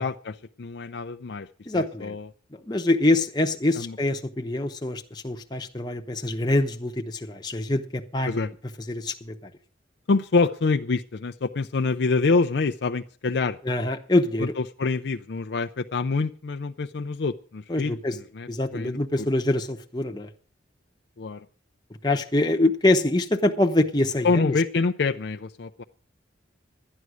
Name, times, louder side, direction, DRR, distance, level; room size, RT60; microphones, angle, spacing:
voice 1, 0.0-1.5 1.7-2.3 3.8-4.0 8.2-8.5 10.1-13.6 14.4-19.3 21.2-21.4 24.2-25.8, left 4 dB, 60° left, 6 dB, 0.5 m, -26 dB
voice 2, 1.7-2.2 2.5-8.3 8.9-9.5 13.6-14.5 17.7-18.2 18.5-20.3 22.0-24.5, left 2 dB, 20° left, 3 dB, 0.9 m, -24 dB
12.5 x 9.6 x 6.2 m, 0.42 s
head